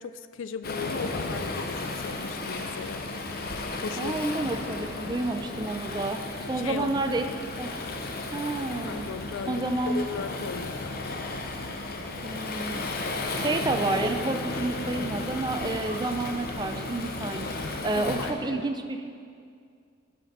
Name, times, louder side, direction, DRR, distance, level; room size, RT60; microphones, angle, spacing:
voice 1, 0.0-3.1 3.8-4.2 4.6-4.9 6.5-7.0 7.3-7.4 8.9-11.0 18.0-18.7, left 6 dB, 65° left, 12 dB, 0.3 m, -37 dB
Waves surf, 0.6-18.3, left 2 dB, 45° left, 0.7 m, -34 dB
voice 2, 4.0-7.2 7.6-7.7 8.3-9.1 9.4-10.1 12.2-12.9 13.3-19.1, right 2 dB, 20° right, 6 dB, 0.4 m, -30 dB
12.0 x 5.8 x 4.3 m, 2.3 s
head